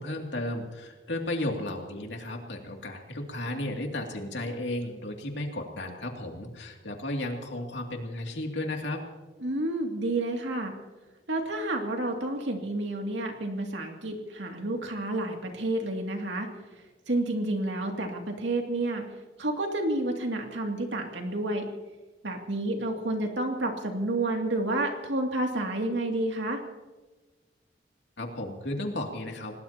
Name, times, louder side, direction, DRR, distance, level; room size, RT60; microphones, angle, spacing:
voice 1, 0.0-9.0 28.2-29.6, left 1 dB, 75° left, 2 dB, 2.6 m, -34 dB
voice 2, 9.4-10.7 11.3-16.5 17.1-19.0 19.4-21.7 22.2-26.6, right 2 dB, 80° right, 2 dB, 2.5 m, -30 dB
26.5 x 19.0 x 2.9 m, 1.2 s
head